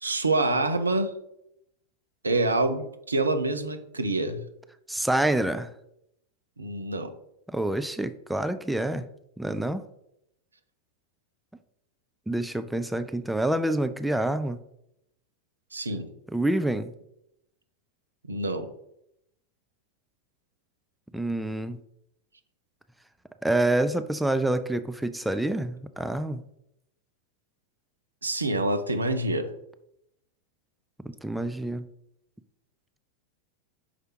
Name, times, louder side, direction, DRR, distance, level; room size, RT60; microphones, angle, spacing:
voice 1, 0.0-1.1 2.2-4.4 6.6-7.1 15.7-16.1 18.2-18.7 28.2-29.5, right 2 dB, 75° right, 8 dB, 0.7 m, -26 dB
voice 2, 4.9-5.7 7.5-9.0 9.4-9.9 12.3-14.6 16.3-16.9 21.1-21.8 23.4-26.4 31.0-31.9, right 1 dB, 5° right, 10 dB, 0.4 m, -27 dB
5.9 x 4.7 x 4.6 m, 0.79 s
figure-of-eight pair, 90°, 0 cm